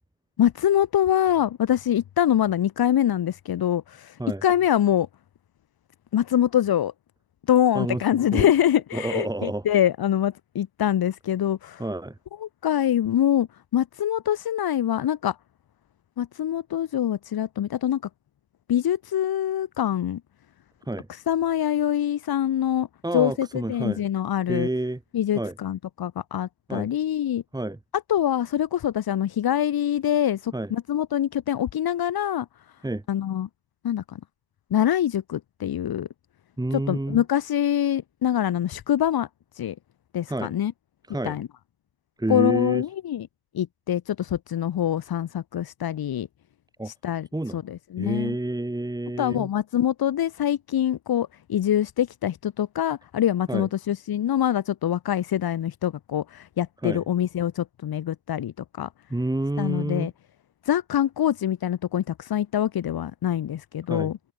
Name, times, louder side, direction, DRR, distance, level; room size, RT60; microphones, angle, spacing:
voice 1, 0.4-5.1 6.1-6.9 7.5-11.8 12.4-13.5 13.7-15.3 16.2-18.0 18.7-20.2 21.1-22.9 23.1-24.7 25.1-27.4 28.1-32.4 33.1-33.5 33.8-34.0 34.7-36.1 36.7-39.3 39.5-39.7 40.1-40.7 41.2-41.5 42.3-43.3 43.5-46.3 46.8-47.3 47.5-48.3 49.2-58.9 59.6-60.1 60.6-64.2, left 10 dB, 45° left, 1.3 m, -24 dB
voice 2, 8.9-9.7 11.8-12.2 20.9-21.1 23.0-24.0 24.5-25.0 25.3-25.6 26.7-26.9 27.5-27.8 30.5-30.7 32.8-33.0 36.6-37.2 40.3-40.5 41.1-41.4 42.2-42.8 46.8-46.9 47.3-47.6 48.0-49.5 53.5-53.7 56.8-57.0 59.1-60.1 63.9-64.1, right 1 dB, 10° right, 3.7 m, -29 dB
wide cardioid pair, 175°, 50 cm